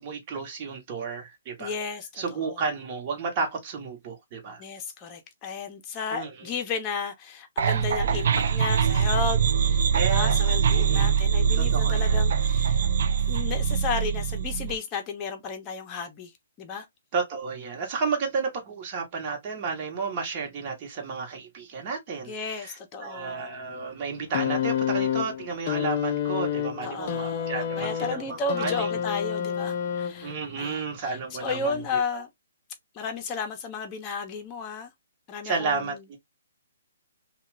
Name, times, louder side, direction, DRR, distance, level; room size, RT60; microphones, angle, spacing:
voice 1, 0.0-1.7 2.2-4.6 6.1-6.3 9.9-10.4 10.8-11.2 11.6-12.2 17.1-29.0 30.2-32.2 35.4-36.2, right 5 dB, 30° right, 1.2 m, -32 dB
voice 2, 1.6-2.6 4.6-12.8 13.3-16.3 16.6-16.9 22.3-23.4 26.8-30.8 31.1-32.3 32.9-34.9 35.3-36.0, left 4 dB, 20° left, 0.9 m, -33 dB
sound 1, 7.6-14.7, right 7 dB, 55° right, 0.5 m, -23 dB
sound 2, 24.3-30.5 31.6-31.7, left 9 dB, 40° left, 0.5 m, -29 dB
2.8 x 2.4 x 3.2 m
hypercardioid pair, 155°, 0 cm